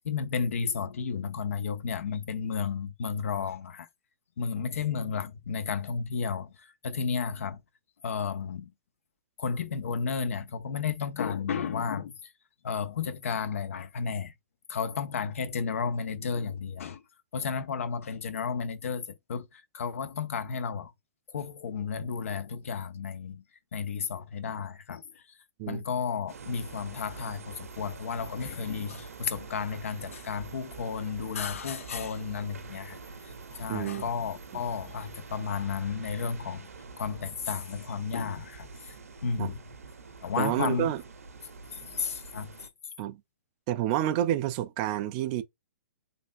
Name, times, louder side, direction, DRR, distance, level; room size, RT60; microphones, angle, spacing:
voice 1, 0.0-3.9 4.4-7.6 8.0-8.7 9.4-12.3 12.6-14.3 14.7-17.0 17.3-20.9 21.3-23.4 23.7-25.4 25.7-33.0 33.2-36.7 37.0-39.0 39.2-39.6 40.2-40.9 41.7-42.7, left 6 dB, 70° left, 0.6 m, -33 dB
sound 1, 26.3-42.7, right 4 dB, 80° right, 0.6 m, -46 dB
voice 2, 33.7-34.0 39.4-39.5 40.4-41.0 43.0-43.2 43.7-45.4, right 12 dB, 35° right, 0.4 m, -29 dB
3.3 x 2.6 x 2.5 m
hypercardioid pair, 125°, 8 cm